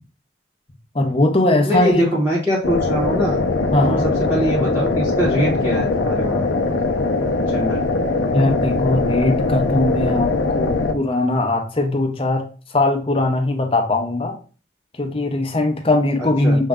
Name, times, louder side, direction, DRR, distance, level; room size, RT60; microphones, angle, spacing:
voice 1, 0.9-2.1 3.7-4.1 8.3-12.4 12.7-14.4 14.9-16.7, left 2 dB, 30° left, 4 dB, 0.7 m, -20 dB
voice 2, 1.6-3.4 3.8-6.4 7.4-7.8 16.4-16.6, equal, 10° right, -6 dB, 0.8 m, -22 dB
sound 1, 2.6-10.9, left 3 dB, 70° left, 0.6 m, -21 dB
6.3 x 2.2 x 3.6 m, 0.37 s
head